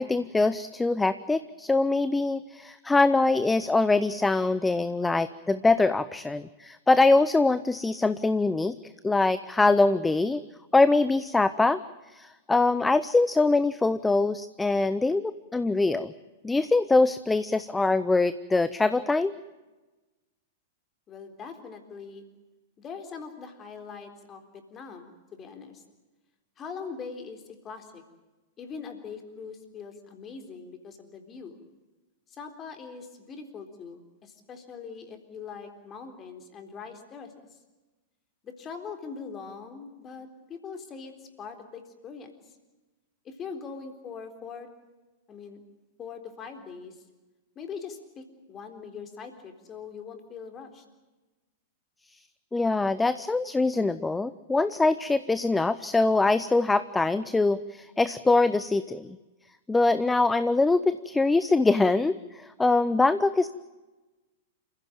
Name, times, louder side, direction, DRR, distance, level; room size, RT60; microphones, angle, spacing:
voice 1, 0.0-8.7 9.0-10.4 10.7-11.8 12.1-16.1 16.4-19.3 52.5-59.1 59.7-63.5, left 3 dB, 10° left, 14 dB, 0.7 m, -23 dB
voice 2, 21.1-22.3 22.8-25.8 26.6-28.0 28.6-31.6 32.3-37.6 38.4-42.6 43.2-44.7 45.3-45.6 46.0-47.0 47.6-50.8, left 5 dB, 25° left, 7 dB, 3.9 m, -42 dB
28.0 x 15.5 x 9.0 m, 1.2 s
figure-of-eight pair, 100°, 0 cm